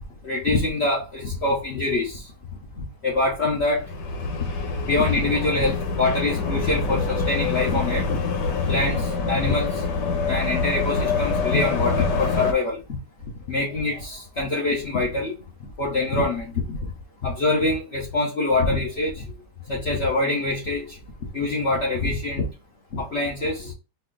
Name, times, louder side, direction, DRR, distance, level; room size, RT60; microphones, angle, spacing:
voice 1, 0.2-2.2 2.8-3.8 4.8-8.2 8.7-9.8 10.3-12.8 13.5-15.3 15.8-16.9 17.2-19.2 19.7-21.0 21.3-22.4 22.9-23.7, left 2 dB, 45° left, 1.2 m, -24 dB
sound 1, 3.7-12.5, left 4 dB, 85° left, 1.5 m, -25 dB
4.3 x 2.9 x 3.9 m
omnidirectional pair, 1.8 m